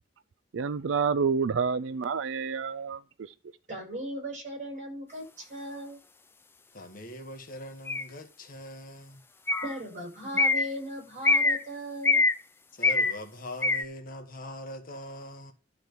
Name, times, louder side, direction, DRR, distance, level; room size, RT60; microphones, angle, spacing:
voice 1, 0.5-3.3, right 5 dB, 80° right, 0.4 m, -28 dB
voice 2, 3.7-6.0 9.6-12.2, equal, 40° right, 6.5 m, -37 dB
voice 3, 6.7-9.2 12.7-15.5, left 1 dB, 45° left, 1.5 m, -42 dB
sound 1, 7.9-8.0 9.5-9.8 10.4-10.7 11.2-11.6 12.0-12.3 12.8-13.2 13.6-13.8, left 3 dB, 10° left, 0.4 m, -23 dB
12.0 x 4.5 x 6.8 m
head